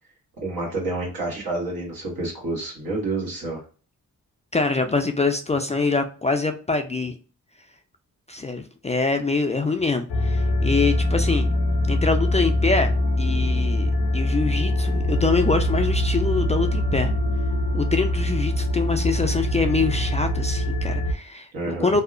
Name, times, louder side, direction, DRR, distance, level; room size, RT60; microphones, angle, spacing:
voice 1, 0.4-3.6 21.5-21.9, right 2 dB, 75° right, -2 dB, 1.3 m, -29 dB
voice 2, 4.5-7.2 8.3-11.5 11.9-12.9 13.2-17.1 17.7-22.0, left 4 dB, 20° left, 5 dB, 0.3 m, -24 dB
sound 1, 10.1-21.1, left 1 dB, 75° left, 0.6 m, -23 dB
2.7 x 2.1 x 2.4 m, 0.37 s
cardioid pair, 50°, 37 cm